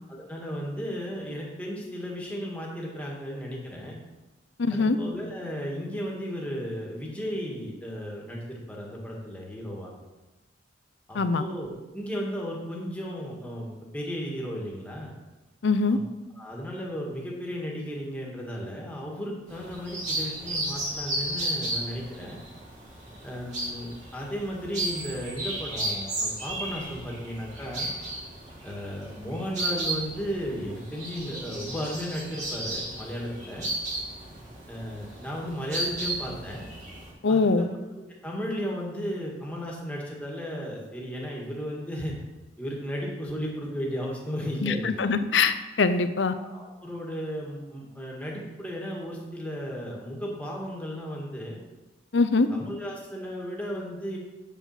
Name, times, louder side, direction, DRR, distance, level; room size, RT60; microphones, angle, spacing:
voice 1, 0.1-4.0 4.7-9.9 11.1-15.1 15.9-16.0 16.3-22.4 23.2-27.9 28.6-33.7 34.7-36.6 37.3-37.6 38.0-42.2 42.6-45.1 46.4-51.6 52.5-54.2, equal, 5° left, -3 dB, 1.8 m, -35 dB
voice 2, 4.6-5.0 11.1-11.4 15.6-16.0 37.2-37.7 44.6-46.3 52.1-52.5, left 4 dB, 65° left, 11 dB, 0.6 m, -23 dB
sound 1, 19.5-37.1, right 1 dB, 40° right, 2.3 m, -34 dB
7.3 x 7.2 x 5.6 m, 1.1 s
head